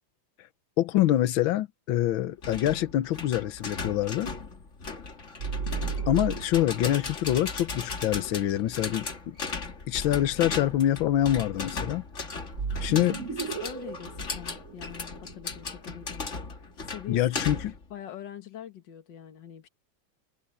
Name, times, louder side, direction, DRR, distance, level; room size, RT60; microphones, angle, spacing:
voice 1, 0.8-4.3 5.6-5.7 6.1-9.4 9.9-12.0 12.8-13.2 17.1-17.7, left 13 dB, 85° left, 1.7 m, -25 dB
sound 1, 2.4-17.8, left 4 dB, 40° left, 2.2 m, -37 dB
sound 2, 5.4-6.9 12.5-15.6, right 5 dB, 45° right, 1.4 m, -34 dB
voice 2, 12.9-13.2 13.5-16.2 16.6-17.5 17.9-19.7, left 10 dB, 65° left, 2.1 m, -44 dB
omnidirectional pair, 2.1 m